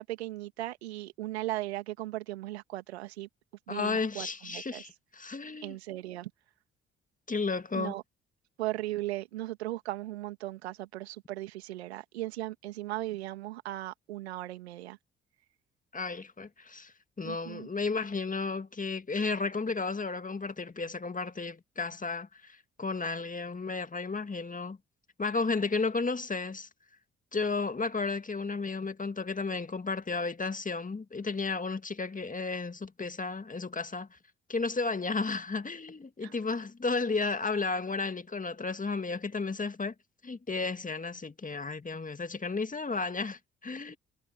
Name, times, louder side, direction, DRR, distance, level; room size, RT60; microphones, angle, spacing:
voice 1, 0.0-3.3 3.7-4.8 5.6-6.3 7.7-8.0 8.6-15.0 17.2-17.7 36.2-36.3, right 16 dB, 85° right, 2.6 m, -37 dB
voice 2, 3.7-5.8 7.3-7.9 15.9-24.8 25.2-26.7 27.3-34.1 34.5-39.9 40.2-44.0, left 4 dB, 25° left, 2.0 m, -33 dB
hypercardioid pair, 45°, 31 cm